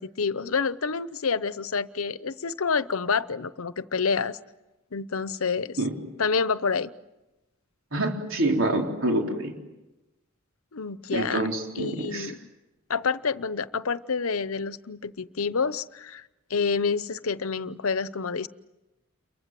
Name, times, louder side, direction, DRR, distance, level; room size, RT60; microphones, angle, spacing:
voice 1, 0.0-4.4 4.9-5.8 6.2-6.9 10.7-11.4 11.7-12.4 12.9-18.5, left 5 dB, 85° left, 15 dB, 0.8 m, -28 dB
voice 2, 7.9-9.5 11.1-12.3, right 1 dB, 70° right, 1 dB, 4.0 m, -26 dB
29.5 x 23.5 x 7.7 m, 1.0 s
head